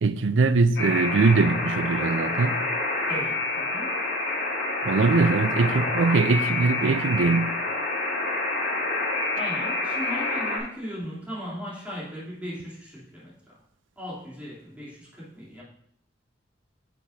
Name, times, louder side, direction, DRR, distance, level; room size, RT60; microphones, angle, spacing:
voice 1, 0.0-2.6 4.9-7.5, right 3 dB, 85° right, 0.5 m, -22 dB
Alarm, 0.8-10.6, left 2 dB, 65° left, 3.7 m, -27 dB
voice 2, 3.1-4.0 9.3-13.6 14.0-15.6, equal, 10° right, 3.1 m, -37 dB
10.0 x 6.6 x 2.7 m
head